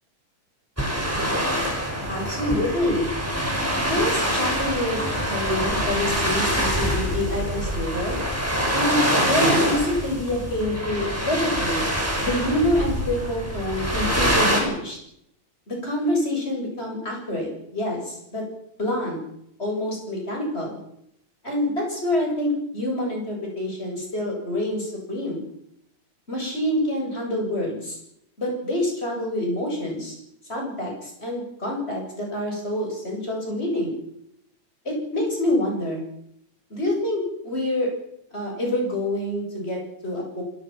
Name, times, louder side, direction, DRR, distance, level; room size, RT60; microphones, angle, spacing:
sound 1, 0.8-14.6, equal, 5° right, 5.5 m, -25 dB
voice 1, 1.8-3.1 3.9-5.0 5.3-8.2 8.7-11.8 12.2-15.0 15.7-18.4 18.8-19.2 19.6-20.8 21.4-25.4 26.3-28.0 28.4-30.1 30.5-33.9 34.8-36.0 36.7-37.9 38.3-40.4, left 1 dB, 15° left, 0 dB, 8.0 m, -26 dB
27.5 x 17.5 x 6.0 m, 0.75 s
omnidirectional pair, 3.7 m